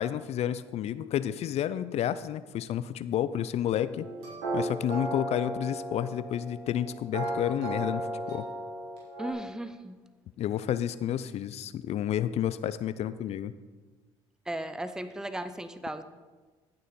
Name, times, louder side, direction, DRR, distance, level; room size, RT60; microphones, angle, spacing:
voice 1, 0.0-4.1 4.5-8.5 10.4-13.5, left 10 dB, 55° left, 15 dB, 0.5 m, -30 dB
sound 1, 4.0-9.3, right 1 dB, 80° right, 3.6 m, -35 dB
voice 2, 9.2-10.0 14.5-16.0, right 1 dB, 5° right, 10 dB, 0.7 m, -36 dB
14.5 x 6.4 x 4.2 m, 1.3 s
hypercardioid pair, 60°, 13 cm